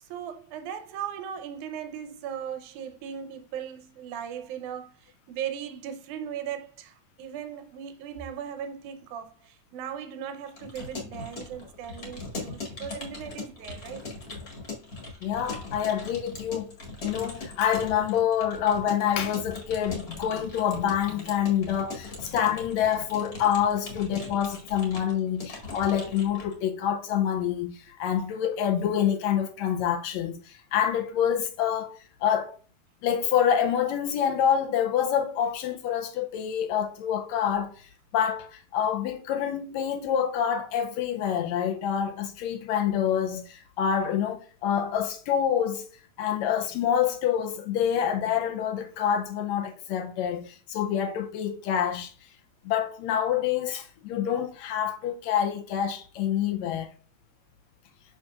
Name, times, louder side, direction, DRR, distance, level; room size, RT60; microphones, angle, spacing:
voice 1, 0.1-14.0, right 9 dB, 80° right, 2.1 m, -38 dB
Keyboard (musical) / Computer keyboard, 10.5-26.6, left 3 dB, 35° left, 1.8 m, -40 dB
voice 2, 15.2-16.7 17.0-32.6 33.0-45.9 46.2-52.1 52.6-56.9, left 9 dB, 80° left, 1.7 m, -27 dB
6.7 x 6.3 x 2.4 m
omnidirectional pair, 3.6 m